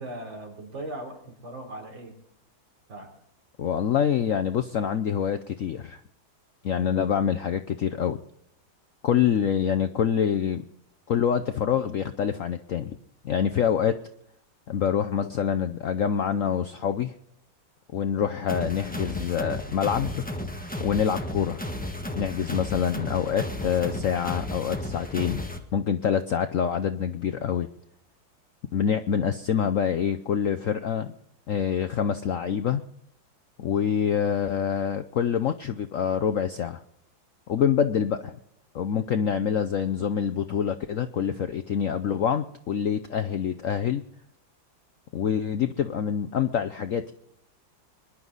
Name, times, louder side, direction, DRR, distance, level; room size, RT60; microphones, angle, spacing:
voice 1, 0.0-2.1 2.9-3.1 37.6-37.7, right 1 dB, 75° right, 1 dB, 4.4 m, -38 dB
voice 2, 3.6-6.0 6.6-8.2 9.0-10.6 11.1-12.9 13.2-14.0 14.7-17.1 17.9-20.2 20.8-21.6 22.1-25.4 25.7-27.7 28.7-31.1 31.5-32.8 33.6-36.8 37.5-38.4 38.7-44.0 45.1-47.1, left 8 dB, 70° left, 8 dB, 0.8 m, -26 dB
sound 1, 18.5-25.6, left 1 dB, 5° left, 1.1 m, -34 dB
22.5 x 11.0 x 4.0 m, 0.73 s
omnidirectional pair, 2.1 m